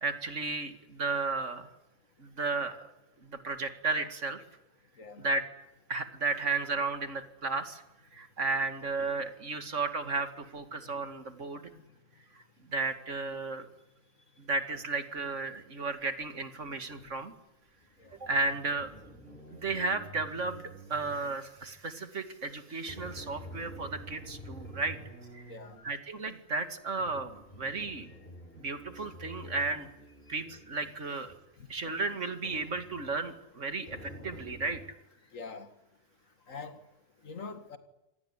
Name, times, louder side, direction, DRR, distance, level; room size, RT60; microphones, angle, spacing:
voice 1, 0.0-1.7 2.2-2.8 3.2-4.4 5.2-5.4 5.9-7.8 8.1-11.7 12.7-13.7 14.4-17.3 18.2-18.9 19.5-25.0 25.3-25.4 25.8-28.1 28.6-29.9 30.3-31.3 31.7-34.8, right 3 dB, 70° right, 9 dB, 2.5 m, -34 dB
sound 1, 16.9-17.1 17.8-21.7 22.8-25.9 27.0-30.9 31.3-31.4 32.4-33.3 33.9-34.8, equal, 35° left, 5.3 m, -49 dB
voice 2, 25.5-25.8 35.3-35.7 36.5-36.8 37.2-37.8, left 4 dB, 90° left, 10 dB, 2.3 m, -43 dB
27.0 x 18.5 x 9.9 m, 0.96 s
omnidirectional pair, 1.3 m